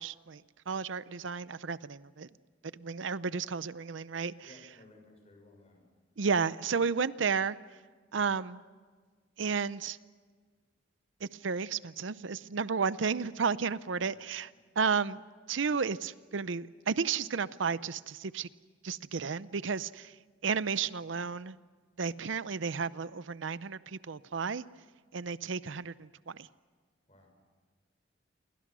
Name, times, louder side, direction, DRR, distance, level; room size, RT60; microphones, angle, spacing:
voice 1, 0.0-2.3 2.7-4.3 6.2-7.6 8.1-8.6 9.4-10.0 11.2-14.5 14.8-15.2 15.5-18.5 18.8-20.1 20.4-21.6 22.0-24.6 25.1-26.5, right 5 dB, 80° right, 16 dB, 0.6 m, -32 dB
voice 2, 4.4-5.8 13.9-14.2 27.1-27.3, left 2 dB, 35° left, 3 dB, 6.6 m, -57 dB
29.0 x 23.5 x 6.2 m, 1.5 s
head